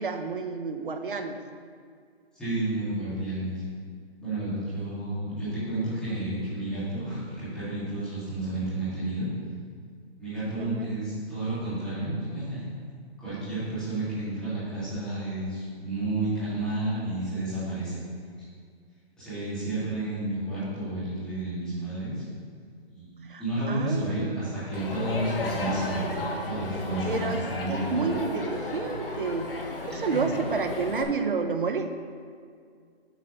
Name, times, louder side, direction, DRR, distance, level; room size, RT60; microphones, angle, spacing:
voice 1, 0.0-1.4 10.6-10.9 23.2-23.4 23.7-24.5 27.0-27.4 27.7-31.9, right 4 dB, 50° right, 6 dB, 0.8 m, -30 dB
voice 2, 2.3-3.5 4.2-9.3 10.2-12.6 13.2-18.0 19.2-22.2 22.9-26.1 26.5-27.8, right 1 dB, ahead, -16 dB, 2.3 m, -31 dB
Crowd, 24.7-31.0, left 2 dB, 55° left, 1.4 m, -34 dB
8.3 x 4.5 x 6.3 m, 2.1 s
hypercardioid pair, 180°, 33 cm